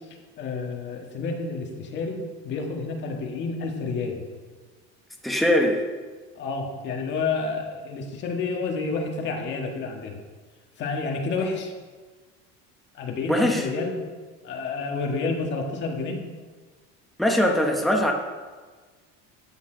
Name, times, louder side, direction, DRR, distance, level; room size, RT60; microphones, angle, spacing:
voice 1, 0.4-4.2 6.4-10.2 10.8-11.7 12.9-14.0 14.4-16.2, left 4 dB, 35° left, 1 dB, 1.6 m, -29 dB
voice 2, 5.2-5.8 13.3-13.7 17.2-18.1, left 1 dB, ahead, 1 dB, 0.9 m, -21 dB
13.0 x 8.3 x 3.9 m, 1.4 s
cardioid pair, 170°, 31 cm